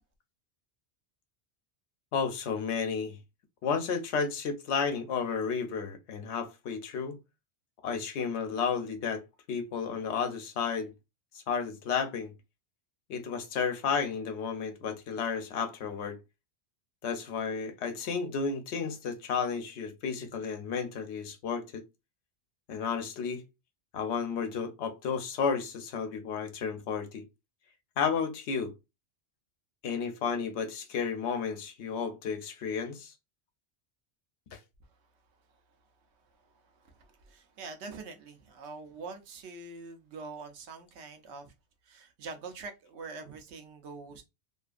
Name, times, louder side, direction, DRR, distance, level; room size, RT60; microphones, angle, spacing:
voice 1, 2.1-3.2 3.6-7.2 7.8-9.2 9.5-10.9 11.5-12.3 13.1-16.2 17.0-21.8 22.7-23.4 23.9-27.2 28.0-28.7 29.8-33.1 34.5-34.6, left 6 dB, 90° left, 0.9 m, -32 dB
voice 2, 36.8-41.5 41.8-44.2, right 4 dB, 80° right, 0.9 m, -44 dB
2.7 x 2.4 x 2.4 m
omnidirectional pair, 1.1 m